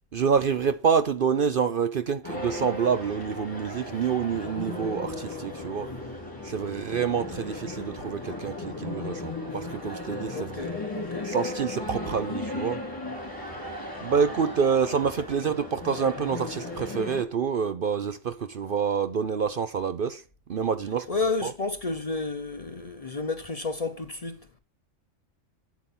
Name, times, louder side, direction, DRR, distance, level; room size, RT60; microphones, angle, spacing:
voice 1, 0.1-5.9 6.4-10.8 11.2-12.8 14.0-20.2 20.5-21.1 21.4-21.5, right 6 dB, 55° right, 0.7 m, -27 dB
sound 1, 2.2-17.2, left 2 dB, 15° left, 2.8 m, -36 dB
voice 2, 10.3-11.3 21.1-24.4, left 3 dB, 35° left, 0.7 m, -31 dB
8.4 x 8.3 x 3.7 m
omnidirectional pair, 1.3 m